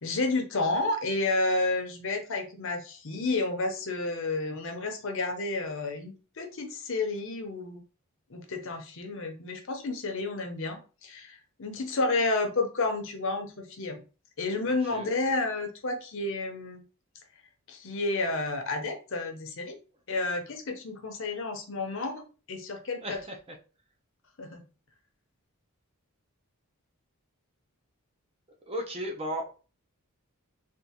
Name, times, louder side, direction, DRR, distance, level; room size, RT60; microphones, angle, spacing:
voice 1, 0.0-7.8 8.3-14.0 14.4-16.8 17.7-19.7 20.1-23.2 24.4-24.6, left 2 dB, 60° left, 4 dB, 0.7 m, -31 dB
voice 2, 14.7-15.1 23.0-23.6 28.7-29.6, equal, 25° right, 3 dB, 0.6 m, -36 dB
3.6 x 2.5 x 2.8 m, 0.34 s
head